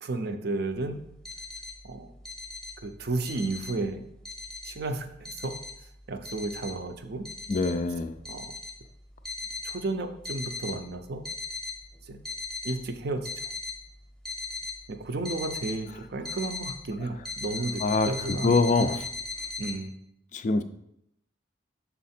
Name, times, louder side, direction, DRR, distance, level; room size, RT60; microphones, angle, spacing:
voice 1, 0.0-1.0 1.8-2.1 2.8-4.1 4.6-5.5 6.1-7.2 8.3-8.5 9.6-11.2 12.1-12.2 12.6-13.5 14.9-19.0 19.6-20.0, right 2 dB, 55° right, 7 dB, 0.5 m, -33 dB
sound 1, 1.0-1.7 2.2-2.7 3.1-3.7 4.2-4.7 5.2-5.8 6.2-6.7 7.2-7.7 8.2-8.7 9.2-9.7 10.2-10.7 11.1-11.7 12.2-12.7 13.2-13.7 14.2-14.7 15.2-15.7 16.2-16.7 17.2-19.8, left 3 dB, ahead, 0.8 m, -37 dB
voice 2, 7.5-8.2 17.8-19.0 20.3-20.6, left 3 dB, 40° left, 10 dB, 0.3 m, -25 dB
5.5 x 4.1 x 4.2 m, 0.77 s
head